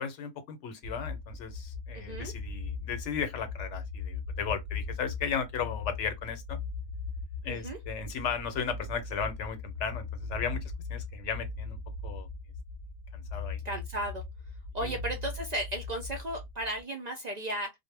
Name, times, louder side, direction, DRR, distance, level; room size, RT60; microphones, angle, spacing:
voice 1, 0.0-6.6 7.4-11.8 12.0-12.3 13.1-13.6 14.8-15.0, left 6 dB, 80° left, 1.0 m, -35 dB
sound 1, 0.8-16.8, left 4 dB, 55° left, 0.6 m, -39 dB
voice 2, 1.9-2.3 7.5-7.8 13.6-14.2 14.7-17.7, right 1 dB, 55° right, 0.4 m, -35 dB
2.1 x 2.1 x 3.1 m
omnidirectional pair, 1.2 m